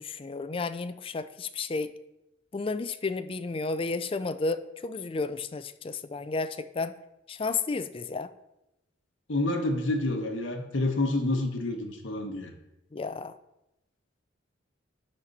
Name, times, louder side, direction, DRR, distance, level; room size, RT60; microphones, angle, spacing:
voice 1, 0.0-1.9 2.5-6.9 7.3-8.3 12.9-13.3, left 3 dB, 30° left, 11 dB, 0.4 m, -32 dB
voice 2, 9.3-12.5, left 2 dB, 70° left, 2 dB, 1.1 m, -28 dB
11.0 x 4.4 x 4.1 m, 0.89 s
head